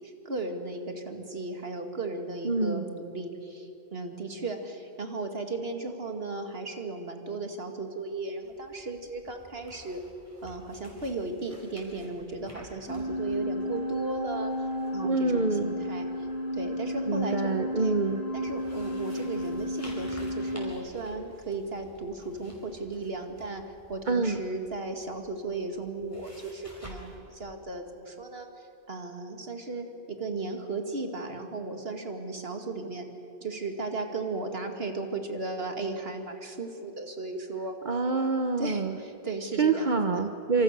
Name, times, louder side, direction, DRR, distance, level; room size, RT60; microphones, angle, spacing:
voice 1, 0.0-10.0 10.4-14.7 14.9-16.3 16.5-18.0 18.3-33.1 33.4-37.8 38.6-40.2, right 2 dB, 75° right, 5 dB, 2.5 m, -36 dB
voice 2, 2.4-2.9 15.0-15.7 17.1-18.2 24.1-24.4 37.8-39.0 39.6-40.6, right 4 dB, 50° right, 6 dB, 1.1 m, -26 dB
sound 1, 8.4-27.2, equal, 15° left, 5.5 m, -52 dB
sound 2, 12.9-20.7, left 1 dB, 80° left, 2.6 m, -33 dB
26.5 x 26.5 x 6.8 m, 2.9 s
omnidirectional pair, 1.0 m